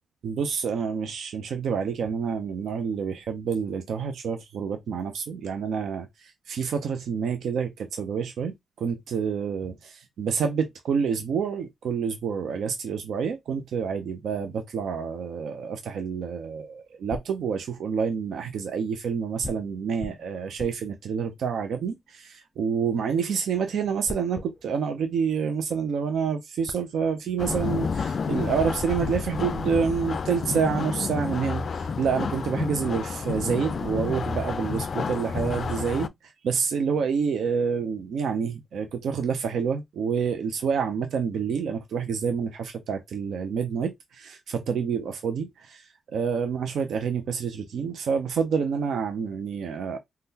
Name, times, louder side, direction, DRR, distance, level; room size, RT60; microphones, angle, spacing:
voice 1, 0.2-50.0, right 6 dB, 75° right, 0.5 m, -28 dB
sound 1, 16.7-18.2 19.4-22.7 24.0-26.0 26.3-26.4 26.7-27.7, left 2 dB, 15° left, 0.7 m, -43 dB
sound 2, 27.4-36.1, left 5 dB, 55° left, 0.3 m, -30 dB
3.5 x 2.2 x 2.7 m
cardioid pair, 65°, 0 cm